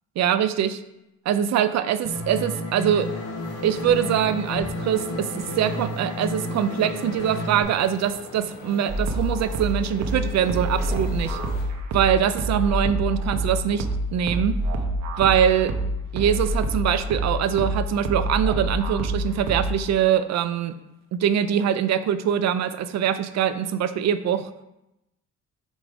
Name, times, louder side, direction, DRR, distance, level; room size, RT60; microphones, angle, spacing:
voice 1, 0.2-0.8 1.3-3.1 3.6-11.4 11.9-14.6 15.2-15.7 16.1-20.8 21.1-24.5, right 9 dB, 60° right, 12 dB, 0.5 m, -23 dB
sound 1, 2.1-7.6, left 1 dB, 55° left, 1.2 m, -32 dB
sound 2, 2.8-11.7, left 3 dB, 90° left, 1.3 m, -40 dB
sound 3, 8.9-19.9, right 1 dB, 80° right, 0.9 m, -27 dB
5.3 x 3.6 x 5.0 m, 0.92 s
cardioid pair, 90°, 30 cm